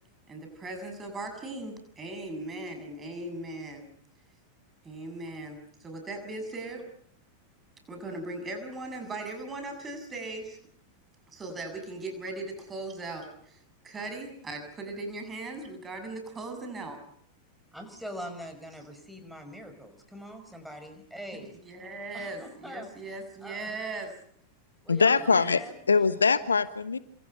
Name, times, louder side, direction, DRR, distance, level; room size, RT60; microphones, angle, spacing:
voice 1, 0.3-3.9 4.8-6.8 7.9-10.6 11.3-17.0 21.3-24.1 25.3-25.6, right 2 dB, 20° right, 7.1 m, -38 dB
voice 2, 17.7-21.5 22.1-22.9 23.4-23.7 24.8-26.0, equal, ahead, 5.5 m, -43 dB
voice 3, 24.9-27.0, left 5 dB, 75° left, 1.2 m, -23 dB
28.0 x 26.5 x 5.8 m
figure-of-eight pair, 90°, 0 cm